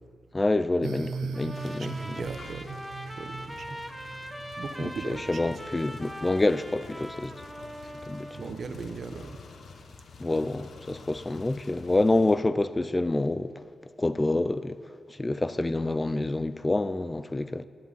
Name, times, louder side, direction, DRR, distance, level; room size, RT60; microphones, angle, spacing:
voice 1, 0.3-2.2 4.8-7.3 8.0-8.6 10.2-13.5 14.0-14.8 15.1-17.6, left 2 dB, 20° left, 0.5 m, -27 dB
sound 1, 0.8-5.4, right 5 dB, 90° right, 0.4 m, -39 dB
Trumpet, 1.3-8.5, equal, ahead, 0.8 m, -41 dB
sound 2, 1.5-12.3, left 4 dB, 65° left, 1.0 m, -49 dB
voice 2, 1.7-2.8 3.2-3.8 4.6-5.4 8.3-9.4, right 4 dB, 60° right, 1.0 m, -38 dB
10.5 x 8.1 x 9.2 m
cardioid pair, 90°, 0 cm